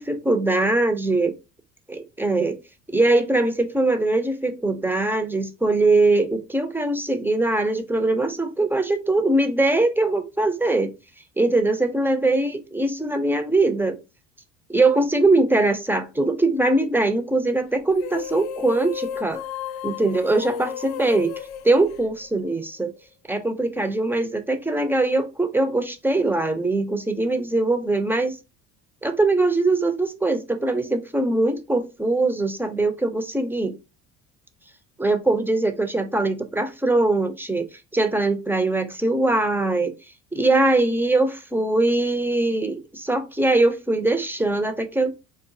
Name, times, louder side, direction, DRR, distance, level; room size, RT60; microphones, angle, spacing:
voice 1, 0.0-1.3 1.9-2.6 2.9-10.9 11.4-14.0 14.7-19.4 19.8-21.3 21.6-22.9 23.3-28.4 29.0-33.8 35.0-39.9 40.3-45.1, right 2 dB, 5° right, 0.3 m, -22 dB
sound 1, 17.9-22.6, left 9 dB, 85° left, 0.5 m, -33 dB
3.8 x 2.2 x 2.5 m
supercardioid pair, 100°, 37 cm